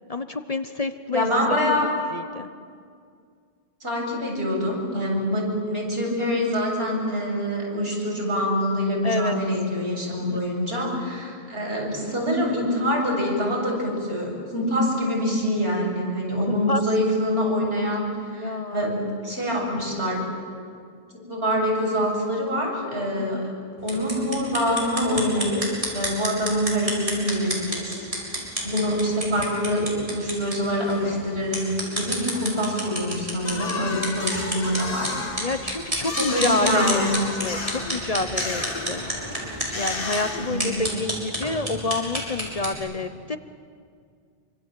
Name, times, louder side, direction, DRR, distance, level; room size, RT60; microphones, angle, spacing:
voice 1, 0.1-1.3 1.7-1.8 2.1-2.5 9.0-9.4 10.3-10.4 16.5-16.8 18.3-18.9 23.2-23.5 35.4-37.1 37.4-38.6 38.9-39.0 39.7-43.4, left 3 dB, 40° left, 9 dB, 0.9 m, -28 dB
voice 2, 1.1-1.9 3.8-18.1 18.3-20.2 21.1-23.5 23.8-25.6 25.9-28.1 28.6-35.5 36.1-37.2 40.4-41.0, equal, 75° right, -2 dB, 7.4 m, -25 dB
sound 1, 23.8-42.7, right 1 dB, 35° right, 5.7 m, -31 dB
sound 2, 33.4-41.1, left 3 dB, 60° left, 1.7 m, -34 dB
26.5 x 25.0 x 7.7 m, 2.2 s
omnidirectional pair, 1.0 m